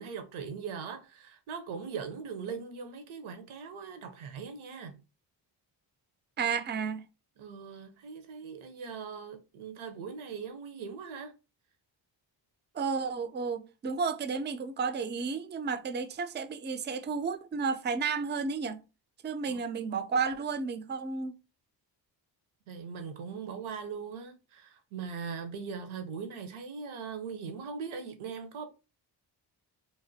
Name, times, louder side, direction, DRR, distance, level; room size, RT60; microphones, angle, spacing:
voice 1, 0.0-5.0 7.4-11.3 19.5-19.6 22.7-28.7, right 6 dB, 80° right, 0.7 m, -40 dB
voice 2, 6.4-7.0 12.7-18.8 19.2-21.3, right 5 dB, 25° right, 0.3 m, -32 dB
3.2 x 2.1 x 2.6 m
cardioid pair, 55°, 48 cm